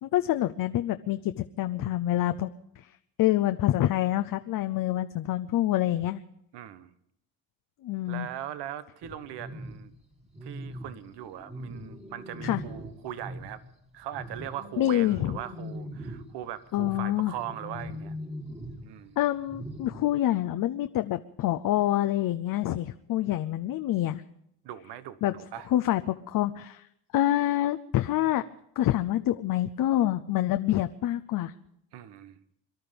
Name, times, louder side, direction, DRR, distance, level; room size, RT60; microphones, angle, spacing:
voice 1, 0.0-2.5 2.8-2.9 3.2-6.2 7.8-8.3 12.4-12.6 14.8-15.4 16.7-17.3 19.2-24.2 25.2-25.3 25.7-26.9 27.1-28.4 28.8-31.5, left 13 dB, 55° left, 8 dB, 0.6 m, -26 dB
voice 2, 6.5-6.9 8.1-9.9 10.4-13.6 13.9-18.1 18.8-19.2 24.6-25.7 31.9-32.4, right 11 dB, 75° right, 14 dB, 1.1 m, -40 dB
sound 1, 9.0-13.7 14.0-20.1, equal, 15° right, 2.0 m, -41 dB
23.5 x 12.0 x 5.2 m, 0.76 s
cardioid pair, 130°, 41 cm